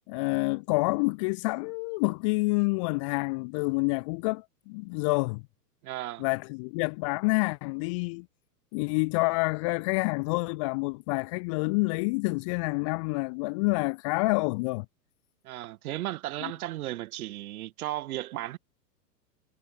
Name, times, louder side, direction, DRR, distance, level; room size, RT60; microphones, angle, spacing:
voice 1, 0.1-5.4 6.2-8.3 8.7-14.9 16.4-16.5, left 29 dB, 20° left, 0.4 m, -28 dB
voice 2, 5.8-6.3 15.4-18.6, right 15 dB, 60° right, 2.0 m, -35 dB
hypercardioid pair, 135°, 49 cm